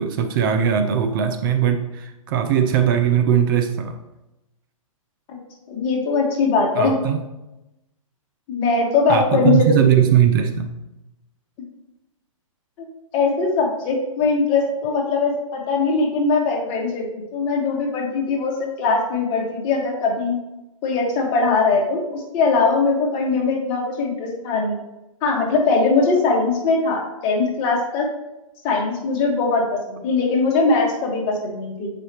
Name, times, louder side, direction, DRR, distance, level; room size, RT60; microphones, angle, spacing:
voice 1, 0.0-4.0 6.8-7.2 9.1-10.7, right 9 dB, 40° right, 6 dB, 0.5 m, -19 dB
voice 2, 5.7-7.0 8.5-9.7 12.8-12.9 13.1-20.4 20.8-24.7 25.2-28.1 28.6-31.9, left 4 dB, 30° left, 0 dB, 1.5 m, -21 dB
7.6 x 5.1 x 2.9 m, 0.96 s
hypercardioid pair, 130°, 18 cm